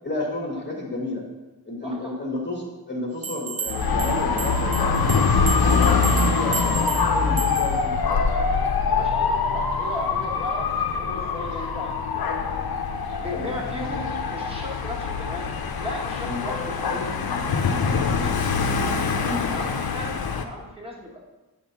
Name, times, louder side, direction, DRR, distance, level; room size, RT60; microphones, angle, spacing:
voice 1, 0.0-1.2 1.6-5.2 5.6-7.9 13.3-13.5 16.2-16.4 18.1-18.3 19.2-19.4, left 2 dB, 30° left, -2 dB, 1.4 m, -31 dB
voice 2, 1.8-2.2 8.9-12.3 13.2-15.5 15.8-17.1 17.5-18.3 18.8-19.2 19.5-20.1 20.4-21.2, left 1 dB, 15° right, -4 dB, 1.7 m, -36 dB
sound 1, 3.2-7.9, right 5 dB, 40° right, 0.4 m, -33 dB
Dog / Motorcycle, 3.7-20.4, left 5 dB, 70° left, 0.7 m, -24 dB
8.0 x 3.8 x 5.7 m, 1.1 s
wide cardioid pair, 80°, 38 cm